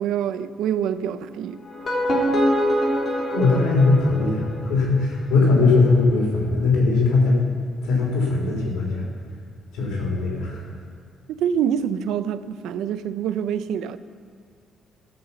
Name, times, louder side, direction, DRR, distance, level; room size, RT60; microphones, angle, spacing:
voice 1, 0.0-1.6 11.3-14.0, right 9 dB, 85° right, 13 dB, 0.4 m, -26 dB
sound 1, 1.6-4.8, equal, 45° left, 3.0 m, -24 dB
voice 2, 3.3-7.5 7.8-9.0 9.7-10.6, left 3 dB, 90° left, -2 dB, 3.5 m, -20 dB
15.0 x 5.7 x 7.0 m, 2.4 s
cardioid pair, 90°, 0 cm